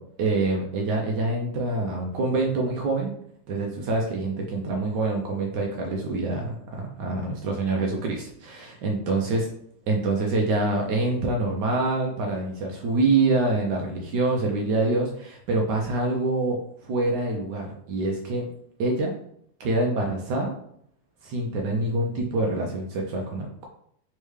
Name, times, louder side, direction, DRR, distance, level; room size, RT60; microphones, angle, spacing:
voice 1, 0.0-3.1 3.5-9.5 9.9-18.5 18.8-19.1 19.6-20.5 21.2-23.7, right 2 dB, 80° right, 0 dB, 1.2 m, -26 dB
3.6 x 3.3 x 3.2 m, 0.68 s
omnidirectional pair, 1.8 m